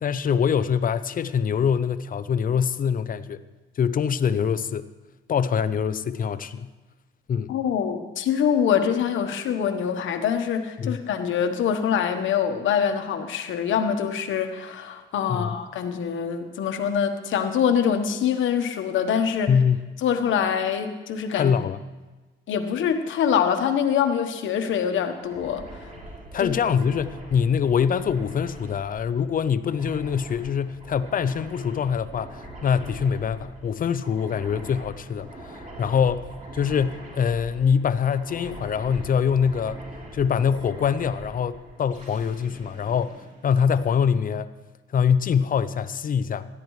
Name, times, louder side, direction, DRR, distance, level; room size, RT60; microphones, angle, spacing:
voice 1, 0.0-3.4 3.8-4.9 5.3-6.7 7.3-7.5 10.8-11.0 15.3-15.5 19.5-19.8 21.3-21.8 26.3-39.8 40.1-44.5 44.9-46.5, left 7 dB, 45° left, 13 dB, 0.6 m, -24 dB
voice 2, 7.5-19.5 20.0-21.5 22.5-25.6 26.4-26.5, left 8 dB, 75° left, 7 dB, 1.2 m, -24 dB
sound 1, 25.2-44.0, right 1 dB, 40° right, 3.6 m, -43 dB
17.5 x 12.0 x 3.2 m, 1.2 s
cardioid pair, 90°, 20 cm